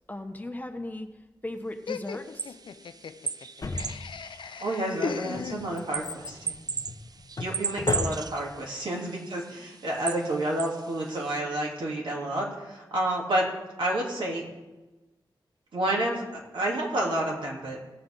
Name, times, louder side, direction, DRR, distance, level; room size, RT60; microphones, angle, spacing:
voice 1, 0.1-1.1 1.4-2.6, left 1 dB, 20° left, 4 dB, 1.1 m, -37 dB
Laughter, 1.9-6.1, left 6 dB, 80° left, 0.4 m, -37 dB
sound 1, 2.2-11.4, right 5 dB, 50° right, 0.5 m, -37 dB
Drawer open or close, 3.6-4.5 5.1-8.6 8.8-8.9, left 3 dB, 50° left, 0.9 m, -35 dB
voice 2, 4.6-6.5 7.4-13.5 13.8-14.4 15.7-16.2 16.5-17.8, right 1 dB, 80° right, -3 dB, 3.3 m, -29 dB
18.5 x 7.7 x 3.9 m, 1.1 s
wide cardioid pair, 85°, 8 cm